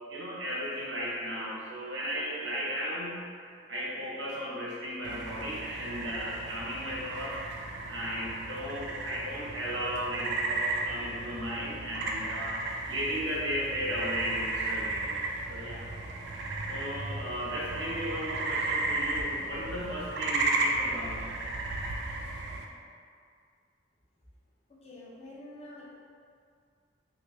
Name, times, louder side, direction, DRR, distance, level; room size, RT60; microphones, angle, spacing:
voice 1, 0.1-3.2 3.7-7.3 7.9-12.5 12.9-15.1 15.5-15.8 16.7-21.3, equal, 80° right, -7 dB, 0.9 m, -35 dB
sound 1, 5.0-22.6, right 2 dB, 65° right, 0.3 m, -34 dB
voice 2, 24.7-25.9, left 1 dB, 35° left, -5 dB, 0.5 m, -47 dB
3.2 x 2.5 x 3.1 m, 2.2 s
head